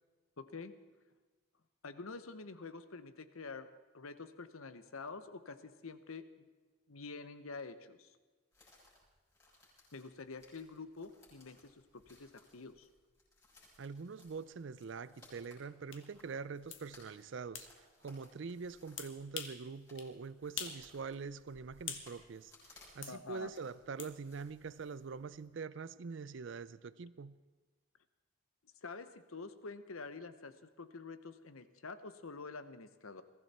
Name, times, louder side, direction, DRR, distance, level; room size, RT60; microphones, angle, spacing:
voice 1, 0.4-0.8 1.8-3.7 3.9-6.5 6.9-8.1 9.9-12.9 23.1-23.5 28.8-33.2, left 4 dB, 80° left, 1.0 m, -47 dB
sound 1, 8.5-25.5, left 2 dB, 15° left, 6.8 m, -65 dB
voice 2, 13.8-27.4, right 5 dB, 60° right, 0.4 m, -44 dB
sound 2, 15.9-16.0 16.7-16.8 17.6-17.7 19.0-19.6 20.0-20.1 20.6-20.8 21.2-22.1 23.0-23.2 24.0-24.1, left 8 dB, 60° left, 1.5 m, -44 dB
22.0 x 15.0 x 4.3 m
head